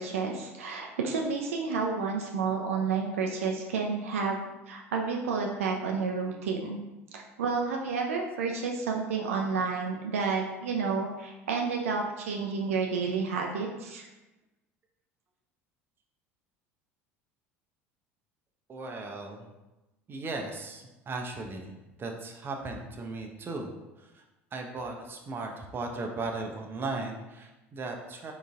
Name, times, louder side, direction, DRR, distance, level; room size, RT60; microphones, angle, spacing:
voice 1, 0.0-4.4 4.7-6.8 7.1-14.1, right 5 dB, 70° right, 1 dB, 0.4 m, -30 dB
voice 2, 18.7-19.5 20.1-21.7 22.0-23.7 24.0-24.2 24.5-28.3, right 3 dB, 30° right, 2 dB, 0.6 m, -37 dB
4.0 x 3.8 x 2.4 m, 1.0 s
figure-of-eight pair, 65°, 8 cm